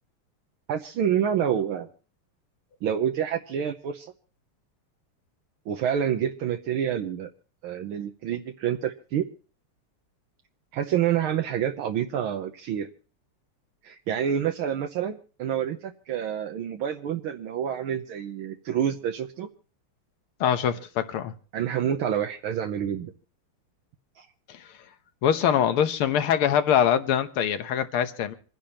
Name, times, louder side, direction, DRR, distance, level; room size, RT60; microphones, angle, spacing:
voice 1, 0.7-1.9 2.8-4.1 5.7-7.3 7.6-9.3 10.7-12.9 13.8-19.5 21.5-23.1 24.2-24.3, right 9 dB, 75° right, 1.7 m, -28 dB
voice 2, 20.4-21.3 24.5-24.6 25.2-28.3, left 9 dB, 80° left, 1.9 m, -23 dB
27.5 x 10.0 x 2.9 m
omnidirectional pair, 2.4 m